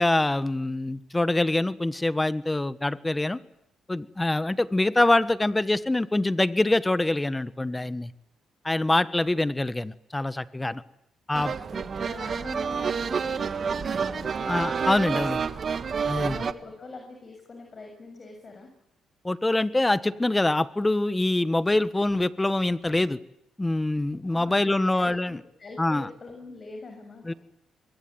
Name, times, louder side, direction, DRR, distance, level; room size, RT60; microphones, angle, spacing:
voice 1, 0.0-3.4 3.9-8.1 8.6-10.8 11.3-11.5 14.5-15.5 16.1-16.4 19.2-23.2 23.6-25.4 25.8-26.1 27.3-27.4, left 2 dB, 15° left, 14 dB, 1.4 m, -25 dB
sound 1, 11.3-16.5, right 6 dB, 45° right, 1.6 m, -29 dB
voice 2, 11.4-14.7 16.3-18.7 24.2-27.4, left 3 dB, 35° left, 4 dB, 6.9 m, -44 dB
26.0 x 22.5 x 9.6 m, 0.80 s
cardioid pair, 90°, 0 cm